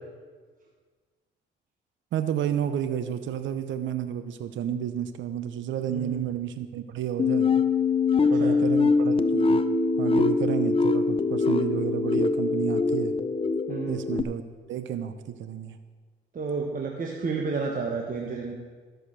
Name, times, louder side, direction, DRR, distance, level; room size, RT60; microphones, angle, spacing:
voice 1, 2.1-7.5 8.3-9.6 10.0-13.1 13.9-14.4 14.7-15.8, right 9 dB, 75° right, 10 dB, 0.8 m, -31 dB
voice 2, 5.9-6.3 8.2-8.6 13.7-14.0 16.3-18.5, right 4 dB, 45° right, 0 dB, 1.4 m, -31 dB
sound 1, 7.2-14.2, left 4 dB, 30° left, 0.6 m, -23 dB
13.0 x 6.6 x 6.5 m, 1.5 s
cardioid pair, 90°, 20 cm